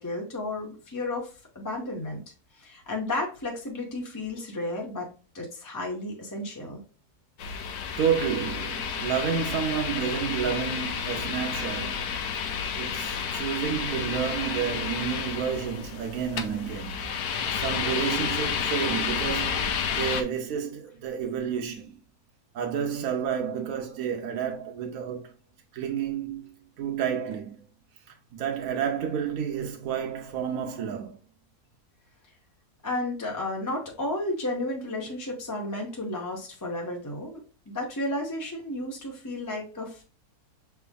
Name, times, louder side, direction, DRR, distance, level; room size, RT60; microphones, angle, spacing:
voice 1, 0.0-2.2 2.5-5.1 5.3-6.8 32.8-37.4 37.7-40.0, left 1 dB, 20° left, 0.6 m, -33 dB
sound 1, 7.4-20.2, left 7 dB, 80° left, 1.2 m, -31 dB
voice 2, 8.0-12.2 12.7-22.0 22.5-25.3 25.7-27.6 28.3-31.2, right 8 dB, 70° right, 1.1 m, -30 dB
6.0 x 3.4 x 2.2 m
omnidirectional pair, 1.6 m